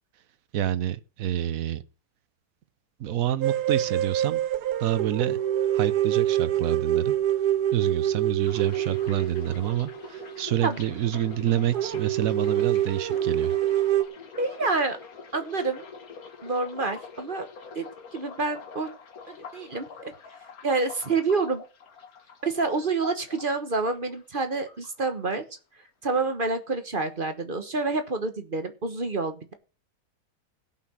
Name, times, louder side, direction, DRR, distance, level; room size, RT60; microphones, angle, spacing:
voice 1, 0.5-1.8 3.0-4.4 4.8-5.4 5.7-7.1 7.7-13.6, right 11 dB, 65° right, 1.1 m, -28 dB
sound 1, 3.4-10.7 11.1-11.2 11.4-11.5 11.7-14.0, right 12 dB, 85° right, 1.5 m, -26 dB
sound 2, 8.4-24.4 24.7-25.6 25.8-26.2, left 5 dB, 65° left, 1.9 m, -45 dB
voice 2, 14.4-15.0 15.3-15.8 16.4-17.5 17.7-17.9 18.1-18.9 19.3-20.1 20.6-21.6 22.4-25.4 26.0-29.5, right 3 dB, 35° right, 1.3 m, -28 dB
16.5 x 5.9 x 6.2 m
omnidirectional pair, 1.7 m